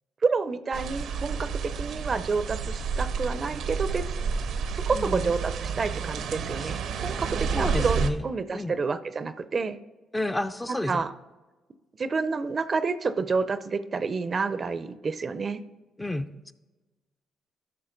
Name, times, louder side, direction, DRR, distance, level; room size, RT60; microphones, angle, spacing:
voice 1, 0.2-4.1 4.7-9.8 10.7-11.1 12.0-15.6, right 4 dB, 40° right, 13 dB, 0.5 m, -29 dB
sound 1, 0.7-8.1, right 6 dB, 75° right, 0.7 m, -30 dB
voice 2, 4.9-5.3 6.6-6.7 7.6-8.2 8.5-8.8 10.1-11.0 16.0-16.5, left 1 dB, 15° left, 10 dB, 0.5 m, -30 dB
12.5 x 6.5 x 3.9 m, 1.2 s
cardioid pair, 90°, 0 cm